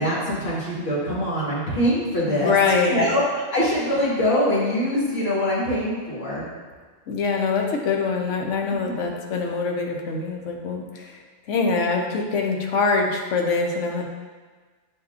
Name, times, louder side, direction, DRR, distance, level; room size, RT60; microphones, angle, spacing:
voice 1, 0.0-2.5 2.8-3.2 3.5-6.4 9.0-9.1, equal, 65° left, -7 dB, 1.6 m, -23 dB
voice 2, 2.3-3.0 7.1-14.1, left 4 dB, 85° left, 1 dB, 1.0 m, -24 dB
7.7 x 2.8 x 2.4 m, 1.4 s
omnidirectional pair, 1.2 m